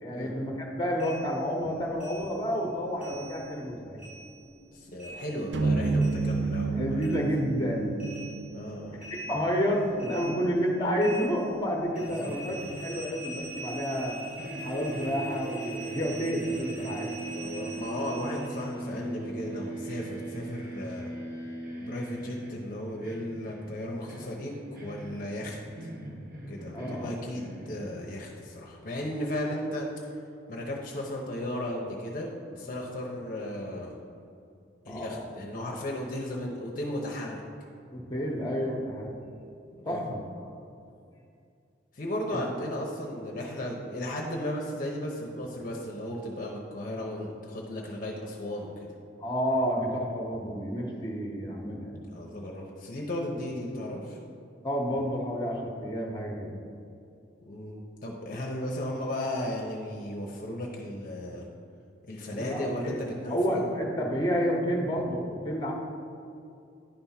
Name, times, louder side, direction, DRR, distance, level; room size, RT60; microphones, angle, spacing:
voice 1, 0.0-4.0 4.4-4.6 6.7-8.1 9.1-14.2 14.6-17.1 26.7-27.1 34.9-35.2 37.9-39.1 39.8-40.2 42.3-42.4 49.2-52.0 54.6-56.5 62.4-63.0 63.3-65.7, equal, 25° left, 0 dB, 1.0 m, -30 dB
sound 1, 1.0-3.7 4.0-6.7 7.0-18.8, right 1 dB, 10° right, 0.9 m, -44 dB
voice 2, 4.7-7.2 8.5-9.0 12.0-12.3 17.3-21.1 21.8-25.9 26.5-29.9 30.5-34.0 34.8-37.4 39.8-40.0 41.9-48.9 52.1-54.2 57.4-61.5 62.0-63.7, left 1 dB, 50° left, -1 dB, 0.8 m, -35 dB
sound 2, 5.5-9.8, right 3 dB, 75° right, 0.5 m, -30 dB
sound 3, 11.9-14.1 14.4-28.4, right 2 dB, 50° right, 1.2 m, -40 dB
10.0 x 3.5 x 5.7 m, 2.5 s
head